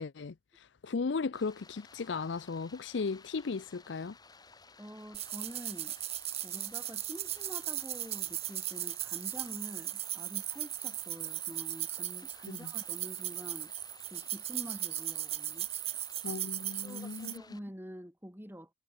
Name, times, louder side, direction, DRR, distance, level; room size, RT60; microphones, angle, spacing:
voice 1, 0.0-4.2 12.5-12.7 16.2-17.4, left 4 dB, 70° left, 0.5 m, -36 dB
Stream, 1.3-17.6, left 4 dB, 20° left, 2.4 m, -57 dB
voice 2, 4.8-5.9 6.4-13.7 14.1-15.7 16.8-18.7, equal, 10° right, 2.5 m, -47 dB
sound 1, 5.1-17.4, right 13 dB, 30° right, 0.6 m, -37 dB
head